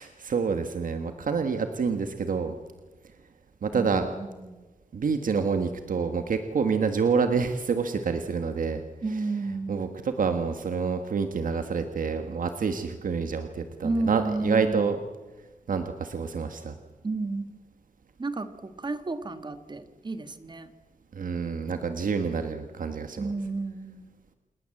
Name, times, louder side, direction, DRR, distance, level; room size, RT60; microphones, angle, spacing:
voice 1, 0.0-2.5 3.6-4.1 4.9-8.8 9.7-15.0 15.7-16.7 21.1-23.3, right 5 dB, 80° right, 7 dB, 1.6 m, -27 dB
voice 2, 3.7-4.6 9.0-10.0 13.8-14.9 17.0-17.6 18.2-20.7 23.2-24.0, right 3 dB, 35° right, 10 dB, 1.7 m, -32 dB
29.0 x 18.5 x 7.8 m, 1.2 s
wide cardioid pair, 150°, 14 cm